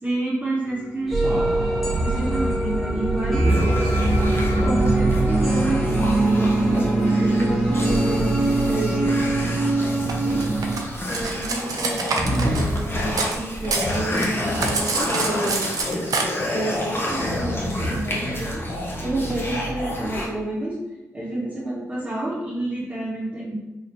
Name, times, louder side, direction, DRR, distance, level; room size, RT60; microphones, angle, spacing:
voice 1, 0.0-1.2 2.0-3.5 4.5-6.0 6.2-8.3 8.7-9.2 10.2-10.4 11.1-15.7 16.5-18.6 19.0-20.8 21.1-23.6, right 1 dB, 20° right, -6 dB, 1.3 m, -29 dB
sound 1, 1.1-10.8, right 2 dB, ahead, 1.2 m, -21 dB
sound 2, 3.4-20.3, equal, 35° left, 1.0 m, -29 dB
Cutlery silverware, 10.1-13.4 13.6-16.2, right 4 dB, 65° right, 0.6 m, -27 dB
4.1 x 2.9 x 2.7 m, 0.98 s
supercardioid pair, 50°, 7 cm